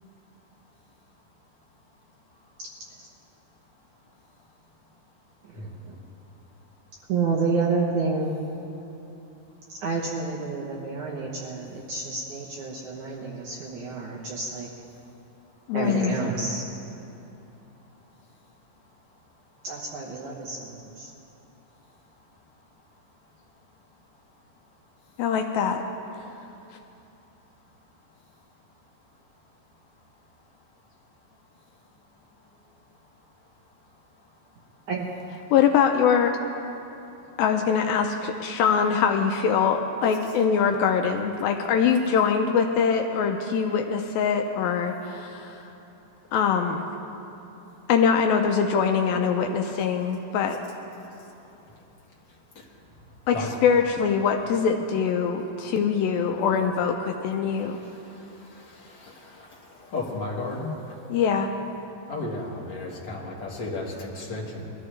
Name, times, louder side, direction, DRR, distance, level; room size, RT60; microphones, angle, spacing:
voice 1, 5.4-6.0 7.1-8.3 9.7-14.7 15.7-16.7 19.6-21.1 34.9-35.1, right 4 dB, 70° right, -3 dB, 2.0 m, -29 dB
voice 2, 15.7-16.2 25.2-25.8 35.5-36.3 37.4-45.6 46.3-46.8 47.9-50.6 53.3-53.4 53.6-57.8 61.1-61.5, left 6 dB, 80° left, 4 dB, 2.2 m, -23 dB
voice 3, 59.0-59.5 59.9-60.7 62.1-64.7, left 2 dB, 50° left, -4 dB, 1.4 m, -33 dB
21.0 x 13.5 x 3.3 m, 2.9 s
omnidirectional pair, 4.5 m